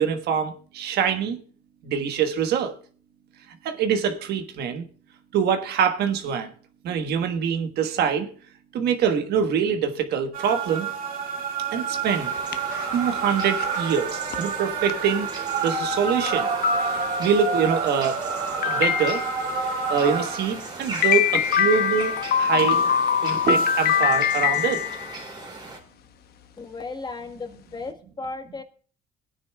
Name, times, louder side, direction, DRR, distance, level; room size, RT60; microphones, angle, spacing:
voice 1, 0.0-1.4 1.8-2.7 3.6-4.8 5.3-6.5 6.8-8.3 8.7-10.9 11.7-12.3 12.9-15.3 15.6-16.5 16.9-18.2 18.6-19.2 19.9-22.8 23.2-24.8, right 7 dB, 75° right, 1.3 m, -24 dB
sound 1, 10.3-21.6 22.3-24.0 24.6-24.7, right 5 dB, 55° right, 2.0 m, -29 dB
sound 2, 12.1-25.8, right 2 dB, 25° right, 2.8 m, -38 dB
sound 3, 12.4-13.0 13.6-13.8 14.3-14.4 14.9-15.0 15.6-15.7 16.3-16.4 16.6-17.4 18.6-19.5 21.0-25.2, left 8 dB, 65° left, 0.8 m, -23 dB
voice 2, 26.6-28.6, left 3 dB, 25° left, 1.4 m, -35 dB
21.5 x 9.8 x 2.3 m
cardioid pair, 110°, 17 cm